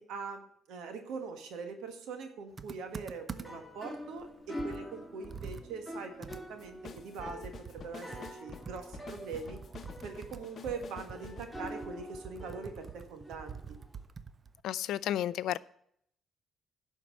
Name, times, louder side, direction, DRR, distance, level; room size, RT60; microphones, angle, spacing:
voice 1, 0.0-9.6 10.0-13.6, right 5 dB, 90° right, 1.5 m, -42 dB
Computer keyboard, 2.6-3.7 4.2-4.3 4.6-7.9 8.1-14.6, right 6 dB, 40° right, 0.6 m, -47 dB
sound 1, 3.3-14.0, equal, ahead, 2.1 m, -46 dB
sound 2, 6.3-12.6, left 6 dB, 50° left, 0.8 m, -50 dB
voice 2, 14.6-15.6, left 12 dB, 80° left, 0.3 m, -32 dB
11.0 x 4.6 x 7.6 m
cardioid pair, 90°, 0 cm